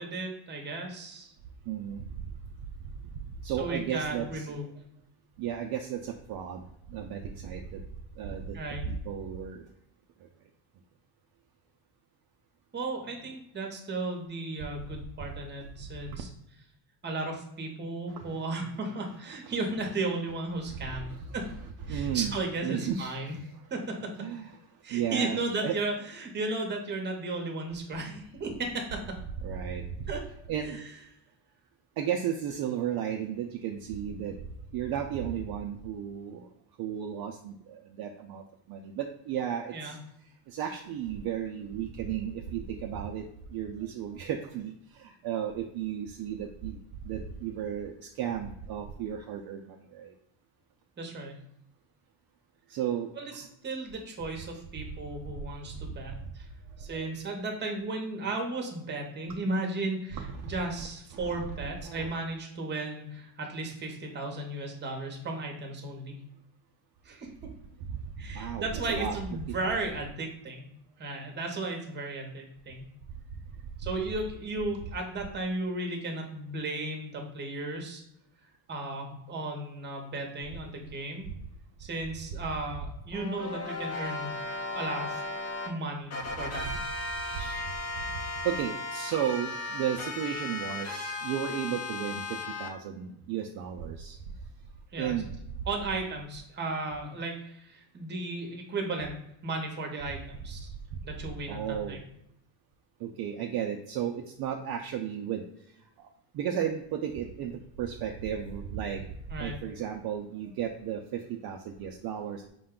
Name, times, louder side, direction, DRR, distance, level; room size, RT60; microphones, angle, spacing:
voice 1, 0.0-1.3 3.6-4.7 8.5-8.8 12.7-16.3 17.0-21.5 21.9-23.4 23.7-24.1 24.8-29.0 30.1-30.2 30.6-30.9 39.7-40.0 51.0-51.3 53.2-56.5 56.8-66.1 67.0-67.3 68.2-70.7 71.0-72.9 73.8-78.0 78.7-81.3 81.8-84.4 84.7-85.2 85.7-86.7 94.9-95.1 95.7-99.2 99.4-100.6 101.0-101.6 101.9-102.0 109.3-109.6, right 2 dB, 25° right, 2 dB, 0.8 m, -35 dB
voice 2, 1.7-2.0 3.4-4.5 5.4-6.6 6.9-7.6 8.2-8.6 8.8-9.6 18.2-18.3 20.8-21.0 21.9-23.4 24.2-24.5 24.9-25.7 29.4-29.8 30.5-30.8 32.0-34.3 34.7-36.4 36.8-37.5 38.0-38.4 38.7-40.0 40.5-43.2 43.5-44.7 45.0-46.8 47.1-49.6 49.9-50.1 52.7-53.1 56.9-57.1 60.2-60.9 61.1-61.3 61.8-62.1 68.3-69.2 87.3-87.5 88.4-92.2 92.6-94.2 95.0-95.3 101.5-102.0 103.0-105.4 106.3-107.5 107.8-109.0 109.4-111.0 111.4-112.5, right 9 dB, 55° right, 3 dB, 0.5 m, -34 dB
sound 1, 83.1-85.7 86.1-92.7, left 2 dB, 35° left, 0.7 m, -36 dB
5.1 x 2.2 x 3.6 m, 0.78 s
cardioid pair, 145°, 46 cm